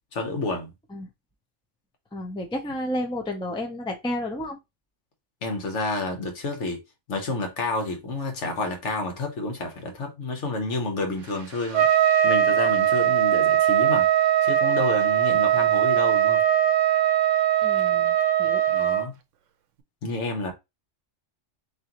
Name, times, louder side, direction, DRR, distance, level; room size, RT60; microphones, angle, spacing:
voice 1, 0.1-0.7 5.4-6.8 7.1-11.9 12.2-14.1 14.4-16.4 18.7-19.1 20.0-20.5, left 2 dB, 75° left, 1.4 m, -29 dB
voice 2, 2.1-4.6 17.6-18.6, left 1 dB, 5° left, 0.5 m, -31 dB
Trumpet, 11.7-19.1, right 11 dB, 80° right, 0.9 m, -20 dB
3.8 x 3.1 x 2.9 m
omnidirectional pair, 1.3 m